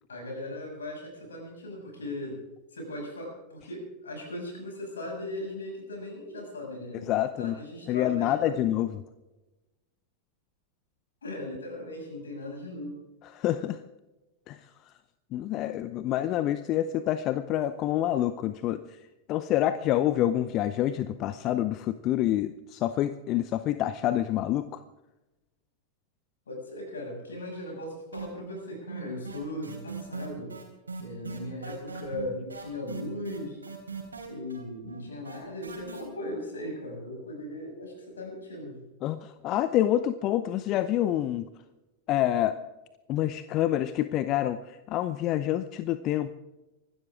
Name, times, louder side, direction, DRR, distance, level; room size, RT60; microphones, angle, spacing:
voice 1, 0.1-2.4 2.7-7.1 7.4-8.7 11.2-13.0 26.5-30.6 31.0-33.6 34.3-38.8, left 1 dB, 70° left, 1 dB, 6.6 m, -38 dB
voice 2, 7.1-7.6 7.9-8.9 13.3-13.8 14.5-14.7 15.3-19.0 19.3-24.8 39.0-41.5 42.1-42.6 43.1-46.3, left 12 dB, 35° left, 14 dB, 0.7 m, -27 dB
sound 1, 28.1-28.6 28.9-36.0, right 4 dB, 80° right, 4.0 m, -39 dB
25.0 x 12.5 x 3.6 m, 1.1 s
figure-of-eight pair, 90°, 0 cm